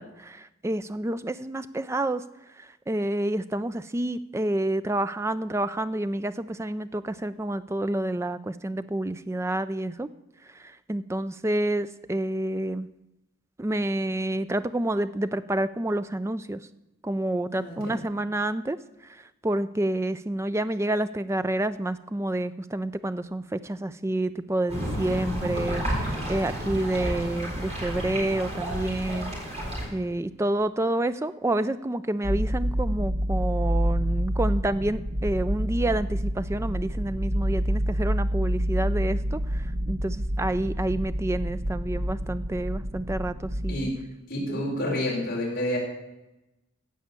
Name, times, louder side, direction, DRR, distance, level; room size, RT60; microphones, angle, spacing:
voice 1, 0.0-10.1 10.4-12.9 13.6-16.7 17.0-43.9, right 1 dB, 10° right, 13 dB, 0.3 m, -29 dB
voice 2, 17.5-17.9 43.7-43.9 44.3-45.8, left 1 dB, 40° left, -4 dB, 3.9 m, -29 dB
sound 1, 24.7-29.8, equal, 30° right, 4.3 m, -31 dB
sound 2, 32.2-43.8, equal, 45° right, 1.1 m, -28 dB
15.5 x 5.6 x 7.4 m, 0.95 s
head